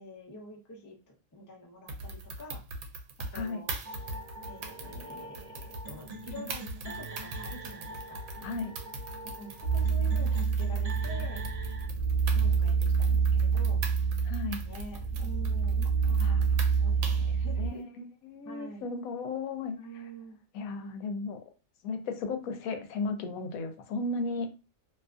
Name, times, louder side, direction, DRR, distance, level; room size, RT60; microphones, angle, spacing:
voice 1, 0.0-2.6 3.3-3.7 4.5-8.2 9.2-11.4 12.3-13.8 14.5-17.9 18.4-18.9 19.7-20.4, equal, 25° left, -1 dB, 0.4 m, -47 dB
sound 1, 1.9-17.4, right 3 dB, 90° right, 1.1 m, -42 dB
sound 2, 3.8-11.9, right 1 dB, 70° right, 0.3 m, -44 dB
voice 2, 8.4-8.7 14.2-14.6 16.2-16.4 17.3-19.8 20.5-21.4 21.8-24.5, left 3 dB, 90° left, 6 dB, 1.0 m, -35 dB
sound 3, 9.6-17.7, right 5 dB, 35° right, 0.8 m, -27 dB
2.7 x 2.4 x 2.4 m, 0.31 s
omnidirectional pair, 1.4 m